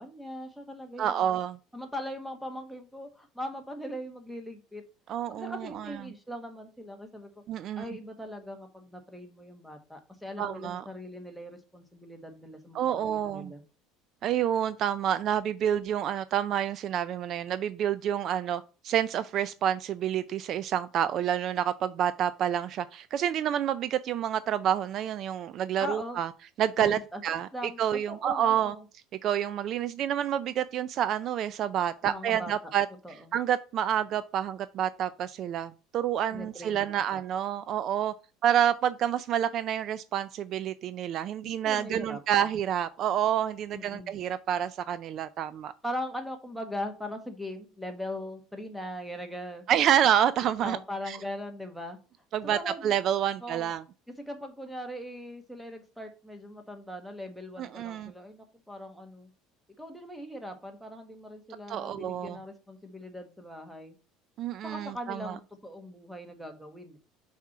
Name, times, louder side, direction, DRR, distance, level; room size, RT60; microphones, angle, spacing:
voice 1, 0.0-1.4 1.7-4.8 5.3-7.3 7.8-13.6 25.8-26.2 26.8-27.2 27.5-28.8 32.0-32.5 33.0-33.3 36.3-37.2 41.4-42.5 43.7-44.2 45.8-49.6 50.6-52.0 52.4-53.0 53.4-53.7 54.2-59.3 59.8-63.9 64.6-67.0, left 1 dB, ahead, 1.4 m, -40 dB
voice 2, 1.0-1.6 5.1-6.0 7.5-7.8 10.4-10.8 12.7-13.5 14.2-26.3 26.6-27.5 27.8-28.7 29.2-32.9 33.3-38.1 38.4-45.7 49.7-50.8 51.1-51.2 52.3-53.8 57.6-58.1 61.7-62.4 64.4-65.4, right 10 dB, 45° right, 0.4 m, -28 dB
5.9 x 4.3 x 5.9 m
cardioid pair, 140°, 0 cm